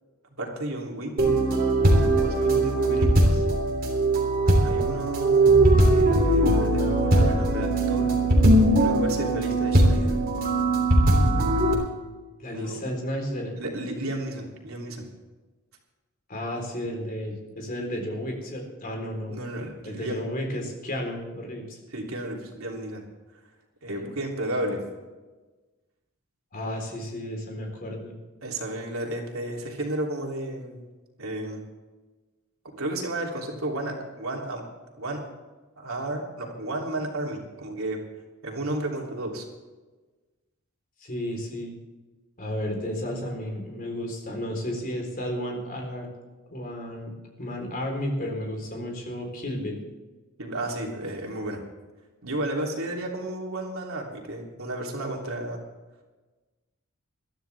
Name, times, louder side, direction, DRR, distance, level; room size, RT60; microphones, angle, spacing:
voice 1, 0.4-1.4 1.9-3.4 4.6-5.5 5.8-8.1 8.8-10.2 12.5-12.8 13.6-15.1 19.3-20.2 21.9-23.0 23.8-24.8 28.4-30.8 31.2-31.6 32.7-34.6 35.0-35.2 35.8-38.0 38.4-39.4 50.4-51.6 52.2-55.6, right 1 dB, 75° right, 0 dB, 3.2 m, -33 dB
sound 1, 1.2-11.7, right 1 dB, 45° right, 3.2 m, -20 dB
voice 2, 12.4-13.6 16.3-19.4 19.8-21.8 23.9-24.1 26.5-28.1 41.0-41.7 42.4-46.1 46.5-47.1 47.4-49.8, equal, 40° left, 1 dB, 4.0 m, -32 dB
21.0 x 13.0 x 3.5 m, 1.2 s
head